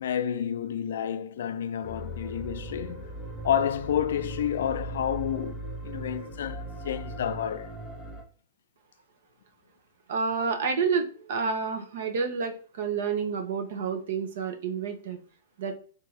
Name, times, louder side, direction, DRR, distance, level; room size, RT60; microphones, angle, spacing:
voice 1, 0.0-3.1 3.4-7.7, left 9 dB, 70° left, 0.4 m, -30 dB
sound 1, 1.8-8.2, right 1 dB, 5° left, 0.7 m, -38 dB
voice 2, 10.1-15.2 15.6-15.7, right 5 dB, 60° right, 0.9 m, -29 dB
3.7 x 2.8 x 4.6 m
hypercardioid pair, 155°, 0 cm